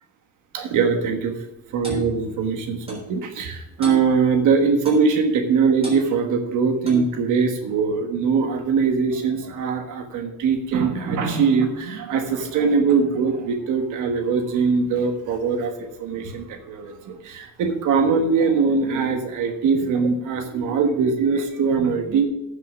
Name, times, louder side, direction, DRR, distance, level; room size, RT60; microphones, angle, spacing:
voice 1, 0.5-1.3 1.7-22.3, right 5 dB, 85° right, 6 dB, 1.4 m, -22 dB
Clock, 1.8-2.1 2.9-3.1 3.8-4.1 4.9-5.1 5.8-6.0 6.8-7.1, equal, 20° right, 3.7 m, -33 dB
9.4 x 5.8 x 7.1 m, 0.93 s
cardioid pair, 90°, 30 cm